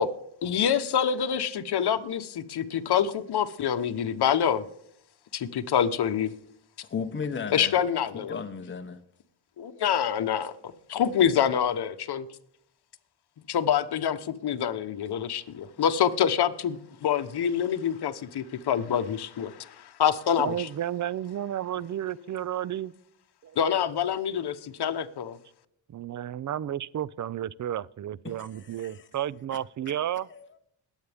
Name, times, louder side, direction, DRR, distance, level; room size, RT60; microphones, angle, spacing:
voice 1, 0.4-4.6 5.3-6.3 7.5-8.4 9.6-10.5 10.9-12.2 13.5-20.7 23.6-25.4, left 8 dB, 55° left, 1.1 m, -26 dB
voice 2, 6.9-7.8 8.1-9.0 28.4-29.0 30.3-30.5, left 6 dB, 25° left, 1.1 m, -35 dB
voice 3, 20.4-22.9 23.4-23.6 25.9-30.3, right 11 dB, 40° right, 0.5 m, -32 dB
21.0 x 8.3 x 3.5 m
cardioid pair, 100°, 46 cm